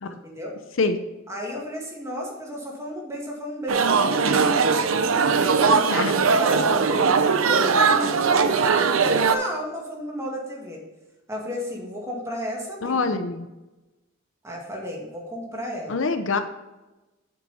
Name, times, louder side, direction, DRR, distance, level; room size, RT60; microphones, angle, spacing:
voice 1, 0.0-0.6 1.3-4.9 5.4-10.8 11.3-13.2 14.4-16.0, equal, 15° right, -2 dB, 2.1 m, -33 dB
sound 1, 3.7-9.4, right 5 dB, 75° right, 0.6 m, -20 dB
voice 2, 12.8-13.5 15.9-16.4, left 4 dB, 65° left, 9 dB, 0.7 m, -24 dB
7.6 x 7.4 x 4.2 m, 1.1 s
head